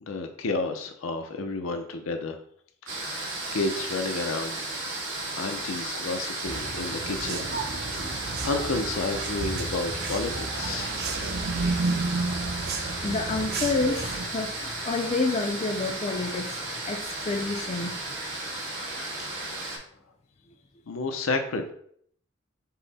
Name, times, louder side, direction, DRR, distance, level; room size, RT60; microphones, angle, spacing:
voice 1, 0.0-2.4 2.9-4.7 5.3-11.0 20.9-21.7, left 3 dB, 85° left, 5 dB, 0.5 m, -31 dB
sound 1, 2.9-19.8, right 2 dB, 80° right, 1.5 m, -34 dB
sound 2, 6.4-14.3, right 3 dB, 55° right, 0.5 m, -32 dB
voice 2, 13.0-16.6 16.8-18.2, left 3 dB, 30° left, 3 dB, 0.4 m, -29 dB
5.5 x 2.1 x 4.0 m, 0.62 s
head